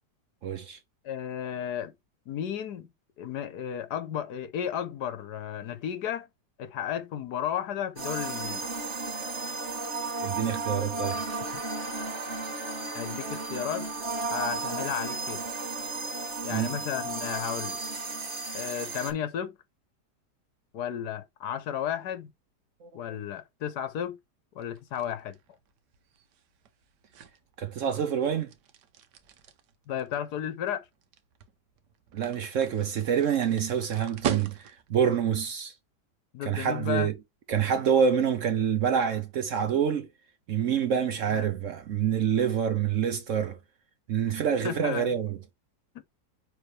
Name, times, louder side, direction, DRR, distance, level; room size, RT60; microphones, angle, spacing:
voice 1, 0.4-0.8 10.2-11.2 16.5-16.7 22.8-22.9 27.6-28.5 32.1-35.7 36.4-37.1 37.5-40.1 40.5-43.6 44.1-45.4, right 8 dB, 60° right, 0.9 m, -27 dB
voice 2, 1.0-1.9 2.3-2.9 3.2-6.3 6.6-8.7 12.9-13.9 14.3-15.4 16.4-17.8 18.5-19.6 20.7-22.3 22.9-24.2 24.5-25.4 29.9-30.9 36.3-37.1 41.3-41.5 44.6-45.2, left 9 dB, 75° left, 1.4 m, -33 dB
sound 1, 8.0-19.1, right 3 dB, 45° right, 1.6 m, -34 dB
sound 2, 24.6-35.0, right 8 dB, 85° right, 1.4 m, -41 dB
9.4 x 3.4 x 3.2 m
omnidirectional pair, 1.8 m